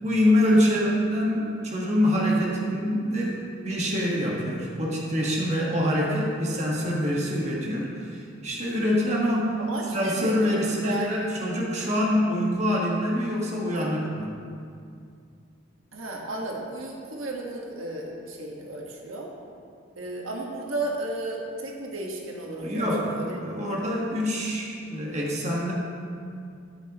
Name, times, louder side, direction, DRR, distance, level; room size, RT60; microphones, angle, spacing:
voice 1, 0.0-9.6 9.9-14.4 22.6-25.7, equal, 35° right, -3 dB, 1.5 m, -25 dB
voice 2, 9.6-11.3 13.7-14.0 15.9-19.3 20.0-23.4, right 2 dB, 80° right, -1 dB, 1.5 m, -34 dB
13.0 x 10.0 x 3.0 m, 2.3 s
head